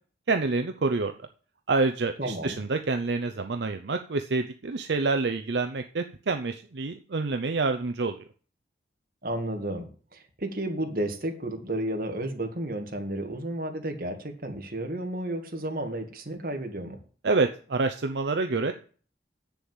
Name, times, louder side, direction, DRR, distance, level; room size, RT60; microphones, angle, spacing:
voice 1, 0.3-1.1 1.7-8.2 17.2-18.7, right 3 dB, 75° right, 7 dB, 0.7 m, -27 dB
voice 2, 2.2-2.6 9.2-17.0, right 1 dB, 50° right, 3 dB, 1.9 m, -32 dB
7.8 x 7.0 x 7.2 m, 0.42 s
head